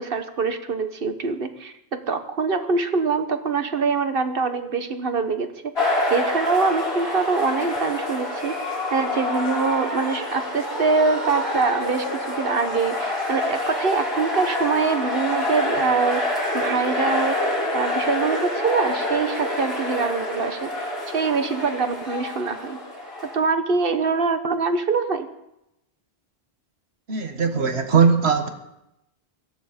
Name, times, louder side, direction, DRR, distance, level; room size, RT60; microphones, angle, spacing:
voice 1, 0.0-22.8 23.2-25.3, right 4 dB, 65° right, 9 dB, 1.4 m, -24 dB
sound 1, 5.7-23.4, left 1 dB, 90° left, 6.0 m, -27 dB
voice 2, 27.1-28.5, right 5 dB, 85° right, 6 dB, 1.8 m, -19 dB
17.5 x 13.5 x 5.2 m, 0.85 s
omnidirectional pair, 1.0 m